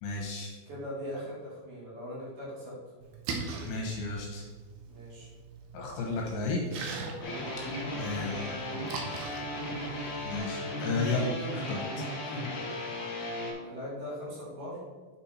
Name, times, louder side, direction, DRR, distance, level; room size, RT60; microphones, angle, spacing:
voice 1, 0.0-0.5 3.6-4.4 5.7-6.9 7.9-8.6 10.3-12.1, left 3 dB, 75° left, -1 dB, 3.1 m, -33 dB
voice 2, 0.7-2.8 4.9-5.3 7.2-7.6 13.5-14.8, equal, 55° right, -8 dB, 3.9 m, -40 dB
Splash splatter, 3.0-10.4, right 4 dB, 85° right, 2.2 m, -42 dB
sound 1, 7.2-13.5, left 1 dB, 55° left, 1.8 m, -36 dB
8.4 x 4.5 x 4.3 m, 1.4 s
omnidirectional pair, 5.6 m